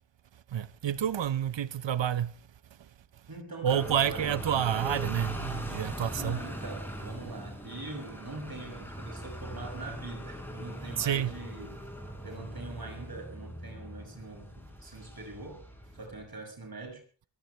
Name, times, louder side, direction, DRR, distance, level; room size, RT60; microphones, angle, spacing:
voice 1, 0.5-2.3 3.6-6.4 11.0-11.3, right 9 dB, 85° right, 0.8 m, -29 dB
voice 2, 3.3-4.3 6.1-11.8 12.2-15.6 15.9-17.0, right 2 dB, 55° right, 6.5 m, -43 dB
sound 1, 3.7-16.2, equal, 5° left, 5.5 m, -41 dB
22.0 x 16.5 x 3.2 m
wide cardioid pair, 85°, 43 cm